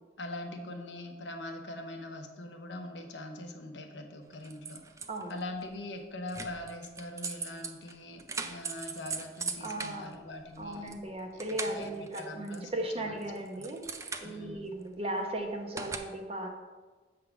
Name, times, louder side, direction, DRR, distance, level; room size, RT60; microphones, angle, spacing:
voice 1, 0.2-4.8 5.3-10.9 11.7-11.9 12.2-12.7 13.1-13.2 13.6-13.7 14.2-14.7, left 1 dB, 80° left, 4 dB, 0.9 m, -42 dB
sound 1, 4.3-5.4 6.3-11.0 11.3-12.8 13.2-14.6 15.8-16.0, right 4 dB, 15° right, 0.4 m, -40 dB
voice 2, 5.1-5.4 9.6-10.1 10.6-16.5, right 1 dB, 35° right, 2 dB, 0.9 m, -37 dB
7.8 x 3.7 x 5.9 m, 1.3 s
head